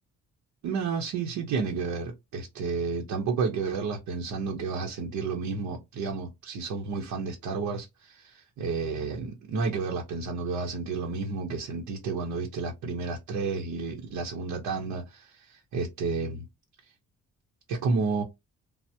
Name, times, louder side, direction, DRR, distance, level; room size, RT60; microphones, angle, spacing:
voice 1, 0.6-16.5 17.7-18.2, right 4 dB, 80° right, 0.7 m, -31 dB
3.4 x 2.0 x 2.7 m
cardioid pair, 90°, 30 cm